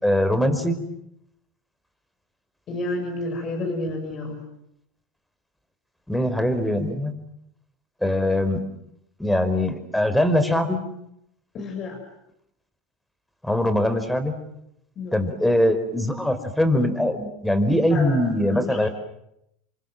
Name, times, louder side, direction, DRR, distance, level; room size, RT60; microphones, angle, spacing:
voice 1, 0.0-0.8 6.1-7.1 8.0-8.6 9.2-10.8 13.4-14.4 15.1-18.9, left 1 dB, 5° left, 10 dB, 5.1 m, -22 dB
voice 2, 2.7-4.4 11.5-12.0 15.0-15.2 17.9-18.9, left 2 dB, 40° left, 3 dB, 6.7 m, -30 dB
29.5 x 24.5 x 7.8 m, 0.79 s
hypercardioid pair, 100°, 0 cm